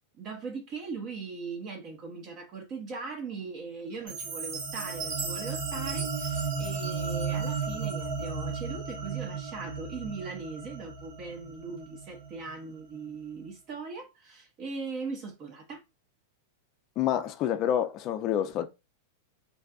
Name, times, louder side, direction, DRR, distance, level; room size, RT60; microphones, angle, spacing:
voice 1, 0.2-15.8, right 4 dB, 35° right, 0.5 m, -40 dB
Chime, 4.1-8.3, right 4 dB, 55° right, 1.0 m, -39 dB
sound 1, 4.1-12.5, right 5 dB, 80° right, 0.9 m, -35 dB
voice 2, 17.0-18.7, left 10 dB, 35° left, 0.3 m, -28 dB
2.6 x 2.3 x 2.3 m
supercardioid pair, 150°, 0 cm